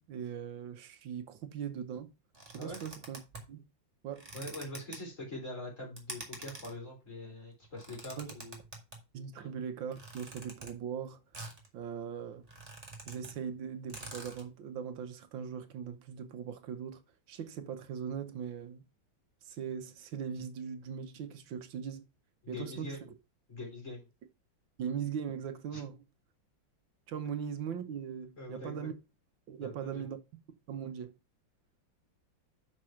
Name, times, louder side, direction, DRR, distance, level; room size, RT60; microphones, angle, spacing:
voice 1, 0.0-2.1 2.5-3.2 3.5-3.6 4.0-4.3 8.2-8.3 9.1-11.2 11.7-12.5 13.1-17.0 17.3-18.8 19.4-22.0 22.5-23.0 24.8-26.0 27.1-28.9 29.5-30.2 30.7-31.1, right 7 dB, 85° right, 1.6 m, -40 dB
sound 1, 2.3-3.5 4.1-5.0 6.0-6.7 7.6-9.0 9.9-10.7 11.3-11.7 12.0-12.1 12.4-13.3 13.6-13.7 13.9-14.5, right 2 dB, 20° right, 2.1 m, -46 dB
voice 2, 4.3-8.6 9.4-9.5 22.4-23.1 23.5-24.1 25.7-25.8 28.4-28.9 29.6-30.0, left 1 dB, 40° left, 4.3 m, -43 dB
6.3 x 5.3 x 5.8 m
omnidirectional pair, 2.1 m